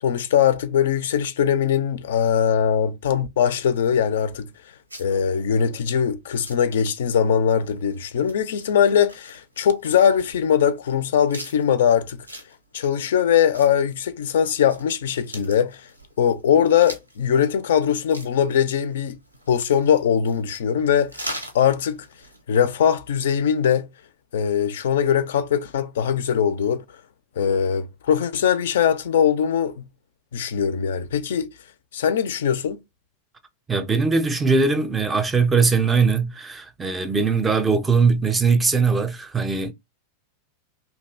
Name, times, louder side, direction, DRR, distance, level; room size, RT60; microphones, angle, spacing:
voice 1, 0.0-4.5 5.0-12.3 12.7-15.9 16.2-19.2 19.5-21.1 21.5-22.1 22.5-23.9 24.3-26.8 27.4-29.8 30.3-31.5 31.9-32.8, left 8 dB, 60° left, 0.4 m, -21 dB
sound 1, 3.7-22.4, equal, 85° right, 0.6 m, -43 dB
voice 2, 33.7-39.7, right 4 dB, 15° right, 0.5 m, -20 dB
2.7 x 2.3 x 3.2 m
figure-of-eight pair, 90°, 0 cm